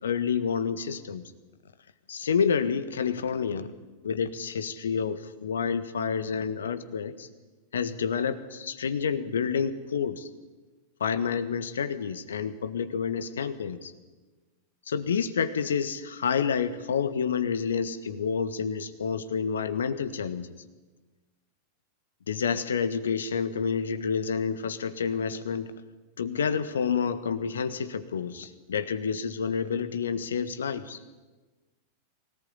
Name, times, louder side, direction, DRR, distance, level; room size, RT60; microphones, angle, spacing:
voice 1, 0.0-1.2 2.1-3.7 4.0-7.3 7.7-10.3 11.0-13.9 14.9-20.5 22.3-25.7 26.2-31.0, left 6 dB, 65° left, 13 dB, 1.6 m, -29 dB
24.0 x 18.5 x 9.8 m, 1.2 s
figure-of-eight pair, 90°, 0 cm